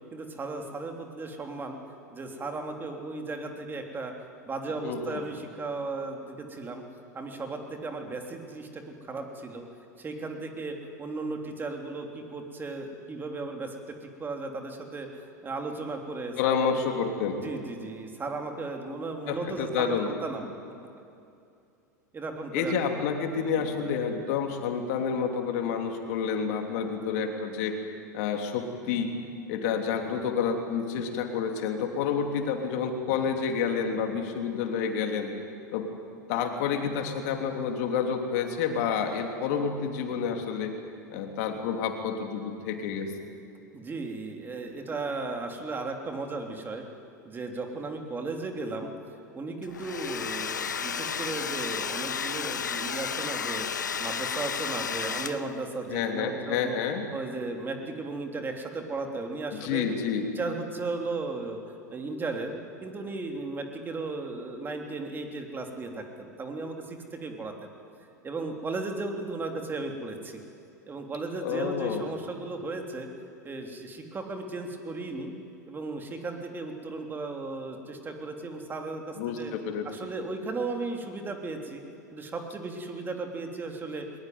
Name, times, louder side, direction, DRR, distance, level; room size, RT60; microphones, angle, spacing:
voice 1, 0.1-1.8 2.1-4.1 4.4-6.8 7.1-9.6 10.0-17.0 17.4-20.6 22.1-23.0 23.4-23.9 43.7-46.8 47.3-48.9 49.3-56.8 57.1-59.9 60.4-61.6 61.9-67.7 68.2-70.4 70.9-73.1 73.4-75.3 75.7-79.5 79.8-81.8 82.1-84.1, right 3 dB, 20° right, 3 dB, 3.3 m, -35 dB
voice 2, 16.4-17.4 19.3-20.1 22.5-27.8 28.1-29.1 29.5-35.3 35.7-35.9 36.3-40.7 41.1-43.1 55.9-57.0 59.5-60.3 71.4-72.0 79.2-79.9, left 6 dB, 60° left, 4 dB, 3.1 m, -29 dB
Domestic sounds home sounds, 49.6-55.7, left 6 dB, 85° left, 0.7 m, -32 dB
21.0 x 20.5 x 9.5 m, 2.6 s
hypercardioid pair, 90°, 10 cm